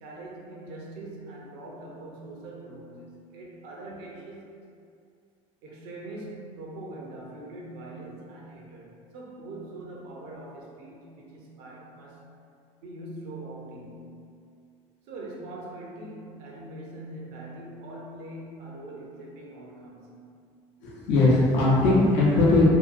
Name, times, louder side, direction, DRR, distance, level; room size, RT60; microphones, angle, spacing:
voice 1, 0.0-4.5 5.6-12.2 12.8-14.3 15.1-20.3, right 2 dB, 70° right, -3 dB, 0.6 m, -42 dB
voice 2, 20.8-22.6, left 2 dB, 75° left, -7 dB, 0.7 m, -20 dB
2.8 x 2.3 x 2.5 m, 2.4 s
hypercardioid pair, 80°, 17 cm